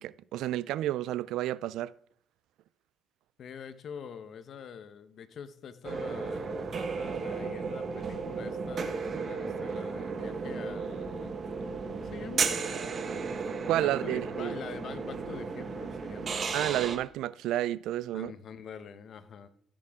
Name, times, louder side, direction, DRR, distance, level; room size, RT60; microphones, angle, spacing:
voice 1, 0.0-1.9 13.7-14.5 16.5-18.3, right 14 dB, 90° right, 0.3 m, -30 dB
voice 2, 3.4-11.3 11.6-12.8 13.8-16.4 18.1-19.5, left 7 dB, 65° left, 0.9 m, -45 dB
sound 1, 5.8-17.0, right 5 dB, 50° right, 1.2 m, -34 dB
15.0 x 7.5 x 3.6 m
cardioid pair, 90°, 0 cm